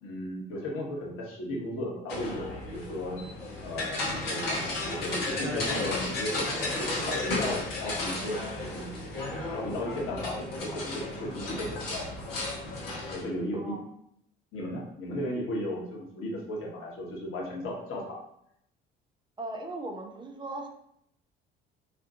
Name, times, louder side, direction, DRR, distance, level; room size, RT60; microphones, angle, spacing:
voice 1, 0.0-3.2 3.6-9.1 9.5-12.1 13.1-13.7 14.5-18.2, left 1 dB, 45° left, -2 dB, 1.2 m, -36 dB
sound 1, 2.1-13.2, left 2 dB, 75° left, 1.0 m, -33 dB
voice 2, 8.0-8.6 13.5-13.8 19.4-20.7, right 2 dB, 15° right, 3 dB, 0.6 m, -39 dB
4.2 x 2.5 x 2.7 m, 0.73 s
figure-of-eight pair, 55°, 30 cm